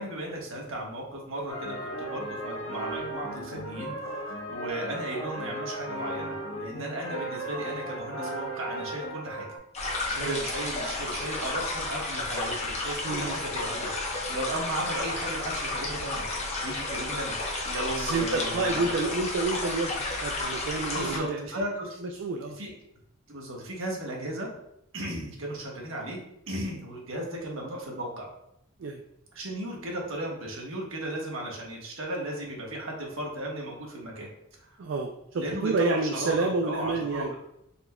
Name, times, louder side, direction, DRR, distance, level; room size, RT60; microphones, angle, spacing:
voice 1, 0.0-9.5 10.1-16.3 16.6-19.1 20.9-22.0 22.6-22.7 23.3-24.5 24.9-26.2 26.5-28.3 29.3-34.3 34.7-34.8 35.4-37.4, right 1 dB, 80° right, -1 dB, 1.1 m, -35 dB
sound 1, 1.5-9.6, right 1 dB, 80° left, 0.8 m, -36 dB
sound 2, 9.7-21.2, left 2 dB, 35° left, 0.8 m, -32 dB
voice 2, 13.0-13.4 18.0-21.4 22.0-22.6 28.8-29.0 34.8-37.3, right 3 dB, 65° right, 3 dB, 0.4 m, -29 dB
4.3 x 4.1 x 2.2 m, 0.81 s
head